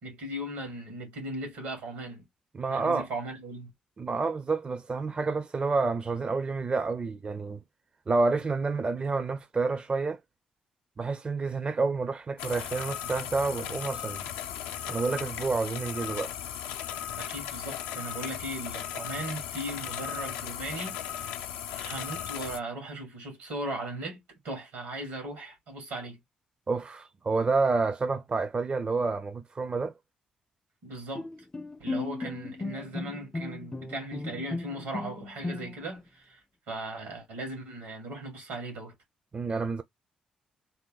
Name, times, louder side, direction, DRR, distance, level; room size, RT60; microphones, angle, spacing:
voice 1, 0.0-2.3 2.7-3.7 17.2-21.3 21.7-26.2 30.8-31.3 31.8-38.9, right 1 dB, 85° right, 2.4 m, -38 dB
voice 2, 2.5-3.1 4.0-7.6 8.1-10.2 11.0-14.2 14.9-16.3 26.7-29.9 39.3-39.8, right 4 dB, 35° right, 0.5 m, -29 dB
sound 1, 12.4-22.6, left 10 dB, 85° left, 0.4 m, -36 dB
Bowed string instrument, 31.1-36.0, left 3 dB, 20° left, 0.4 m, -36 dB
3.9 x 2.1 x 3.9 m
hypercardioid pair, 45°, 3 cm